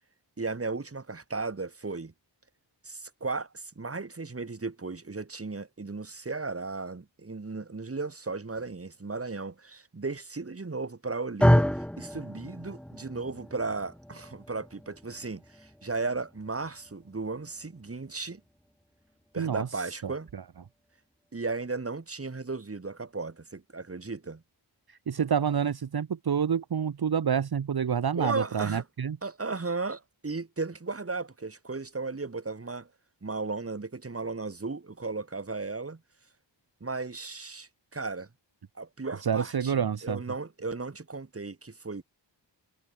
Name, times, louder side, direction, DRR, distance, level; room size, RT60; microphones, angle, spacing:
voice 1, 0.4-2.1 2.8-18.4 19.3-20.3 21.3-24.4 28.1-28.9 29.2-32.9 33.2-36.0 36.8-38.3 38.8-42.0, right 3 dB, 30° right, 2.3 m, -35 dB
sound 1, 11.4-19.7, equal, ahead, 1.1 m, -30 dB
voice 2, 19.4-20.4 24.9-29.2 39.2-40.2, right 7 dB, 55° right, 1.1 m, -28 dB
wide cardioid pair, 75°, 44 cm